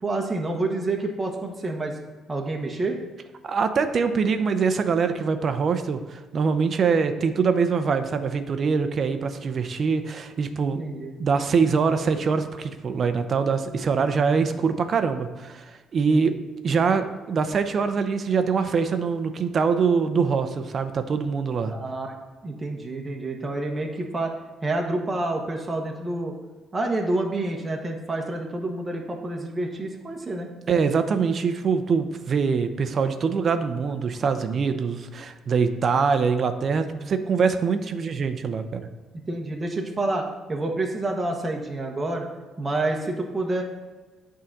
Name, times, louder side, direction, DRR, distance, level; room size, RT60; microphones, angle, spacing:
voice 1, 0.0-2.0 2.3-3.0 10.8-11.1 14.4-14.5 16.1-16.3 21.7-22.1 22.4-24.3 24.6-26.3 26.7-30.5 37.0-37.2 39.3-40.2 40.5-42.3 42.6-43.6, right 2 dB, 25° right, 1 dB, 1.1 m, -28 dB
voice 2, 3.4-10.8 11.2-16.3 16.6-21.7 30.7-38.9, right 5 dB, 50° right, 9 dB, 0.7 m, -24 dB
8.6 x 3.8 x 6.0 m, 1.3 s
cardioid pair, 85°, 0 cm